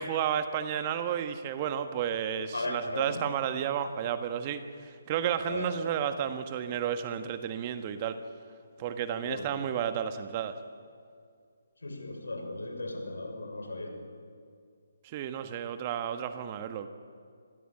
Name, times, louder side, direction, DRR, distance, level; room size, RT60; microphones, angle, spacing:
voice 1, 0.0-8.2 8.8-10.6 15.0-16.9, right 9 dB, 30° right, 8 dB, 1.5 m, -32 dB
voice 2, 2.5-3.2 5.4-5.7 9.2-9.5 11.8-14.0, left 2 dB, 75° left, 4 dB, 6.4 m, -36 dB
26.5 x 20.5 x 8.9 m, 2.2 s
figure-of-eight pair, 145°, 0 cm